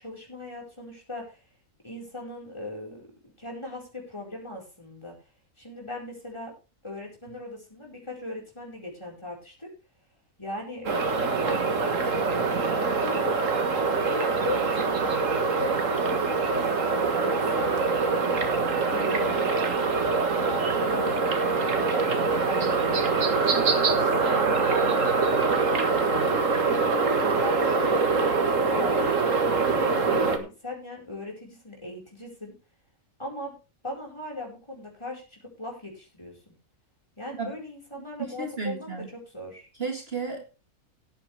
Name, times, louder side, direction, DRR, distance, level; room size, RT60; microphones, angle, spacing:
voice 1, 0.0-1.4 1.8-3.1 3.4-5.1 5.6-6.5 6.8-9.7 10.4-12.3 13.0-13.4 14.0-17.9 18.8-19.7 20.4-21.2 21.6-23.2 23.4-26.2 26.9-29.1 29.5-32.5 33.2-33.5 33.8-36.6 37.2-39.7, left 1 dB, 20° left, -1 dB, 4.9 m, -38 dB
sound 1, 10.8-30.4, right 4 dB, 65° right, 1.9 m, -24 dB
voice 2, 38.4-39.1 39.8-40.4, right 4 dB, 45° right, 2 dB, 2.1 m, -32 dB
17.0 x 8.9 x 3.4 m, 0.31 s
omnidirectional pair, 1.5 m